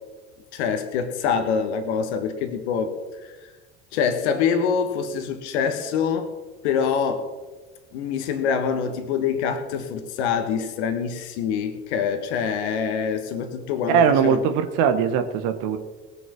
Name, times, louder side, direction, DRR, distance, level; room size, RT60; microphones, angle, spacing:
voice 1, 0.5-2.9 3.2-3.4 3.9-6.3 6.6-7.2 7.9-14.4, left 6 dB, 70° left, 7 dB, 1.5 m, -25 dB
voice 2, 13.9-15.8, right 7 dB, 60° right, 9 dB, 1.3 m, -20 dB
19.0 x 6.9 x 6.2 m, 1.3 s
hypercardioid pair, 65°, 35 cm